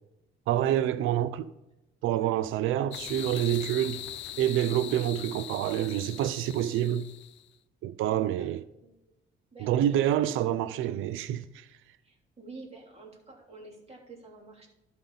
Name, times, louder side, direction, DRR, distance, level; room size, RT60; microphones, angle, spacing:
voice 1, 0.5-1.5 2.0-4.0 4.4-7.1 7.8-8.6 9.6-11.7, right 11 dB, 85° right, 0.5 m, -27 dB
voice 2, 2.0-2.4 8.4-9.0 9.5-10.1 12.0-14.7, right 3 dB, 30° right, 3.1 m, -48 dB
sound 1, 2.9-7.4, left 13 dB, 70° left, 0.4 m, -41 dB
12.0 x 5.3 x 4.0 m
cardioid pair, 90°, 20 cm